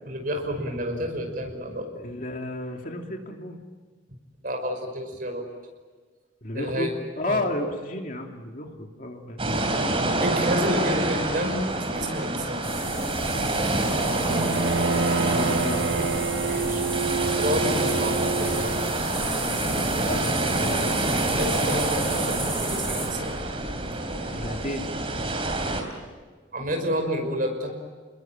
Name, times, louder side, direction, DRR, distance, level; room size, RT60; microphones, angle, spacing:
voice 1, 0.1-1.9 4.4-5.5 6.5-6.9 7.2-7.4 9.5-9.9 10.2-12.7 16.5-16.9 17.3-18.8 21.3-23.3 26.5-27.7, equal, 50° right, 4 dB, 5.7 m, -30 dB
voice 2, 2.0-3.6 6.4-9.5 15.3-15.9 19.9-20.3 24.3-24.9, left 1 dB, 45° left, 2 dB, 2.8 m, -32 dB
sound 1, 9.4-25.8, right 2 dB, 30° right, 3.7 m, -27 dB
sound 2, 12.6-23.1, right 2 dB, 10° right, 7.3 m, -35 dB
Bowed string instrument, 14.3-19.2, right 4 dB, 65° right, 0.7 m, -28 dB
29.5 x 21.5 x 9.0 m, 1.4 s
head